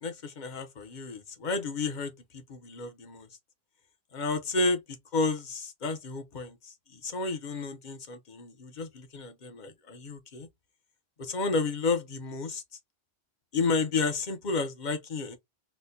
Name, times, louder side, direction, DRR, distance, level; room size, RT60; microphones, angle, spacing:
voice 1, 0.0-3.3 4.1-10.5 11.2-12.6 13.5-15.4, left 3 dB, 50° left, 0.8 m, -32 dB
4.1 x 2.1 x 2.6 m
omnidirectional pair, 1.1 m